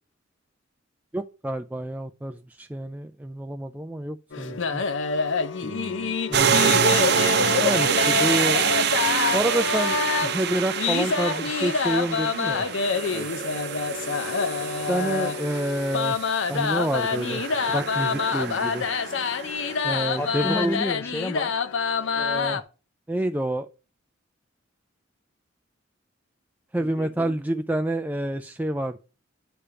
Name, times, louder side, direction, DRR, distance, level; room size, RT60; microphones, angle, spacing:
voice 1, 1.1-4.8 6.3-6.8 7.6-8.7 9.3-12.7 14.9-16.2 16.5-18.9 19.8-20.8 22.2-22.6 23.1-23.7 26.7-29.0, right 1 dB, 10° right, 0.3 m, -28 dB
sound 1, 4.3-22.6, left 5 dB, 70° left, 0.7 m, -26 dB
voice 2, 5.6-6.2 13.1-13.3 20.2-21.5 26.8-27.4, left 1 dB, 15° left, 0.8 m, -32 dB
sound 2, 6.3-20.4, right 7 dB, 55° right, 0.7 m, -27 dB
10.0 x 3.4 x 6.7 m
head